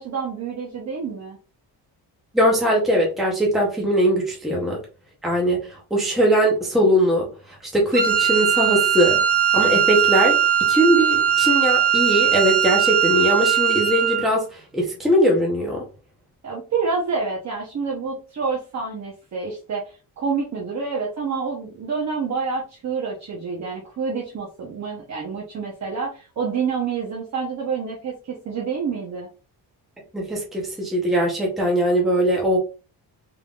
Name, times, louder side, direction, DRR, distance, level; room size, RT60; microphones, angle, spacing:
voice 1, 0.0-1.4 16.4-29.3, right 5 dB, 40° right, -2 dB, 0.9 m, -28 dB
voice 2, 2.3-4.8 5.2-9.2 9.5-15.8 30.1-32.6, equal, ahead, -2 dB, 0.8 m, -21 dB
Wind instrument woodwind instrument, 7.9-14.3, right 9 dB, 80° right, 1.8 m, -19 dB
3.6 x 3.5 x 2.4 m, 0.33 s
wide cardioid pair, 180°, 41 cm